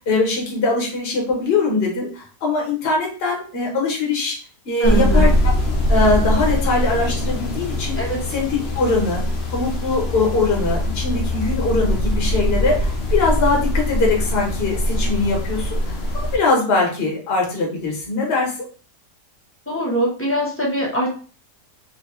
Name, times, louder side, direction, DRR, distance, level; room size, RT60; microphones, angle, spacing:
voice 1, 0.0-4.3 4.6-5.5 5.9-8.0 8.3-9.2 9.5-18.5, left 3 dB, 40° left, -1 dB, 1.2 m, -21 dB
sound 1, 4.8-16.4, left 1 dB, 60° left, 0.6 m, -22 dB
voice 2, 4.8-5.3 8.0-8.2 19.7-21.1, equal, 15° left, -4 dB, 0.4 m, -22 dB
3.1 x 2.9 x 3.0 m, 0.40 s
omnidirectional pair, 1.7 m